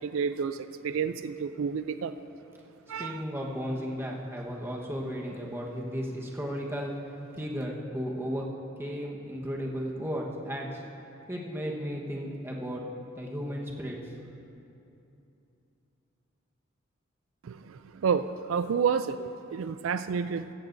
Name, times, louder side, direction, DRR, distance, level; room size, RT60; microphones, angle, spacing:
voice 1, 0.0-2.1 2.9-3.2 17.4-20.5, right 6 dB, 85° right, 11 dB, 0.4 m, -30 dB
voice 2, 2.9-6.9 7.3-8.4 8.8-10.8 11.3-12.8 13.2-14.0, equal, 10° right, -2 dB, 1.2 m, -34 dB
16.0 x 15.0 x 2.6 m, 2.8 s
head